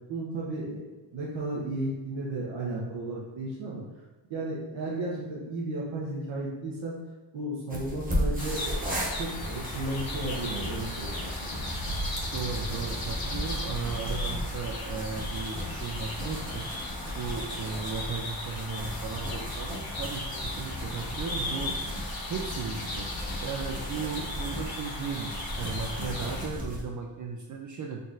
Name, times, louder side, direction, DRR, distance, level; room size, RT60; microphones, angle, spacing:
voice 1, 0.1-0.8 1.1-3.8 4.3-6.9 7.3-11.6, right 2 dB, 80° right, -5 dB, 1.0 m, -34 dB
sound 1, 7.7-26.8, equal, 20° right, 0.9 m, -36 dB
sound 2, 8.4-26.5, left 1 dB, 50° left, 1.1 m, -36 dB
voice 2, 12.3-16.6 17.2-21.7 22.3-23.1 23.4-28.0, right 5 dB, 40° right, 1 dB, 0.4 m, -36 dB
4.0 x 3.9 x 2.4 m, 1.2 s
cardioid pair, 90°, 47 cm